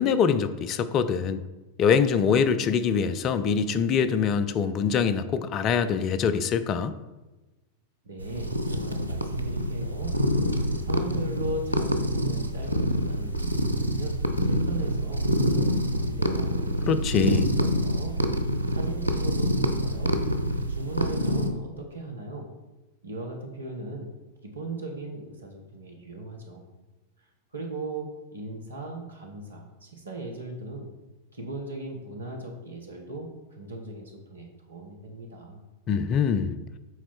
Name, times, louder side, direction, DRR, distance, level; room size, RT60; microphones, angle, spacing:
voice 1, 0.0-1.4 1.8-6.9 16.9-17.5 35.9-36.6, left 6 dB, 35° left, 12 dB, 0.5 m, -24 dB
voice 2, 8.0-10.1 10.8-16.5 17.2-18.2 18.7-20.2 20.7-22.5 23.0-24.1 24.4-26.6 27.5-30.9 31.3-35.6, right 2 dB, 75° right, 1 dB, 1.4 m, -38 dB
sound 1, 8.2-21.5, equal, 90° left, 0.7 m, -26 dB
8.0 x 4.3 x 4.6 m, 1.1 s
figure-of-eight pair, 90°, 0 cm